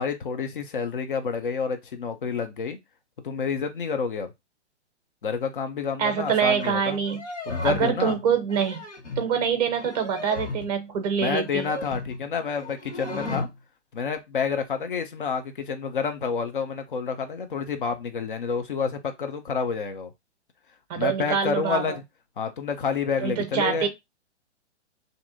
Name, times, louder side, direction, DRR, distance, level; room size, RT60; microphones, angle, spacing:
voice 1, 0.0-2.8 3.2-4.3 5.2-7.0 7.5-8.2 11.2-13.5 13.9-20.1 20.9-22.0 22.4-23.9, left 5 dB, 50° left, 0.5 m, -29 dB
voice 2, 6.0-7.3 7.6-8.8 9.2-11.7 20.9-22.0 23.2-23.9, right 7 dB, 35° right, 0.6 m, -25 dB
sound 1, 6.6-6.7 7.0-8.0 8.4-9.3 9.8-10.7 11.4-12.2 12.6-13.5, left 2 dB, 80° left, 1.6 m, -35 dB
2.6 x 2.4 x 2.5 m
figure-of-eight pair, 120°, 35 cm